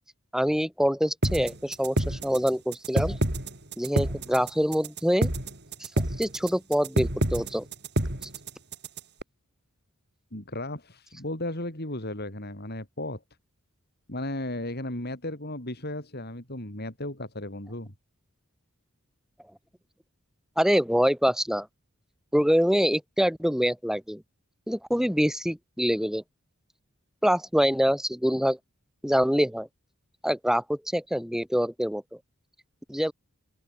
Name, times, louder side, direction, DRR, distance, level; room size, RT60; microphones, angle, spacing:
voice 1, 0.3-3.2 3.8-5.3 6.2-7.7 20.6-21.7 22.3-24.2 24.7-26.2 27.2-28.6 29.0-29.7 30.2-32.0 32.9-33.1, equal, ahead, 4.8 m, -25 dB
sound 1, 1.2-9.2, right 1 dB, 50° right, 5.4 m, -28 dB
voice 2, 10.3-13.2 14.1-17.9, left 1 dB, 50° left, 7.2 m, -35 dB
open air
head